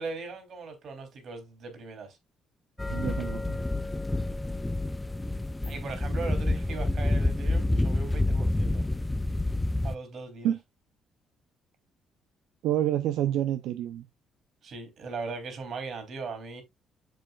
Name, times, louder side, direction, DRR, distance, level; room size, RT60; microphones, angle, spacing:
voice 1, 0.0-2.2 5.6-8.8 9.8-10.5 14.6-16.6, right 4 dB, 55° right, 3.1 m, -39 dB
sound 1, 2.8-9.9, left 2 dB, 10° left, 0.3 m, -28 dB
voice 2, 2.9-3.6 10.4-10.6 12.6-14.1, right 11 dB, 90° right, 0.6 m, -28 dB
7.8 x 6.9 x 2.3 m
cardioid pair, 110°, 0 cm